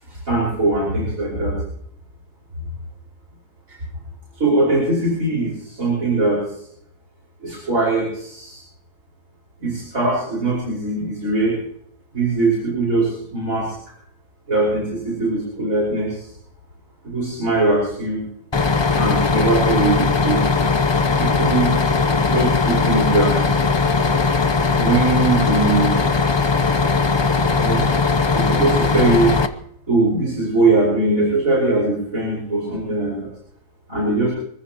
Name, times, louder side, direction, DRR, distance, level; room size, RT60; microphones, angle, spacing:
voice 1, 0.1-1.6 4.4-6.4 7.4-8.6 9.6-11.6 12.1-13.7 14.5-16.3 17.0-18.2 19.0-20.4 21.2-23.4 24.8-26.0 27.5-27.9 28.3-29.4 29.9-33.3 33.9-34.3, right 2 dB, 75° right, -5 dB, 5.6 m, -21 dB
Bus, 18.5-29.5, left 4 dB, 25° left, 0.6 m, -19 dB
25.5 x 15.0 x 3.0 m, 0.67 s
omnidirectional pair, 1.5 m